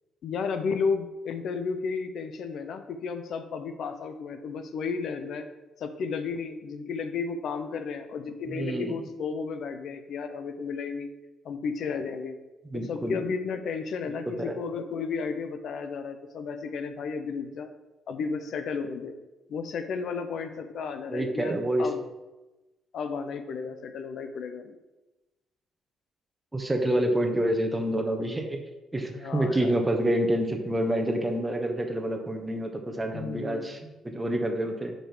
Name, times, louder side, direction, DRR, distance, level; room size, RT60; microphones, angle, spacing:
voice 1, 0.2-5.5 5.8-11.1 11.4-12.3 12.7-17.7 18.1-19.1 19.5-22.0 22.9-24.8 29.1-29.8 33.1-33.8, left 5 dB, 70° left, 8 dB, 0.7 m, -33 dB
voice 2, 8.5-9.0 12.7-13.2 14.1-14.5 21.1-21.9 26.5-28.6 28.9-34.9, right 1 dB, 15° right, 3 dB, 1.2 m, -28 dB
5.2 x 4.9 x 6.0 m, 1.0 s
cardioid pair, 90°, 0 cm